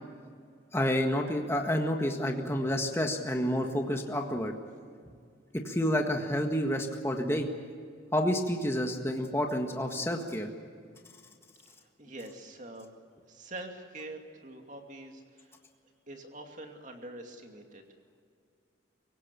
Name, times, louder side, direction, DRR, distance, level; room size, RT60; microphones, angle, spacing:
voice 1, 0.7-4.5 5.5-7.5 8.1-10.5, equal, 15° left, 3 dB, 1.7 m, -29 dB
voice 2, 11.8-13.0 13.3-15.5 16.1-17.8, right 2 dB, 40° right, 3 dB, 2.6 m, -45 dB
25.0 x 16.5 x 8.5 m, 2.2 s
head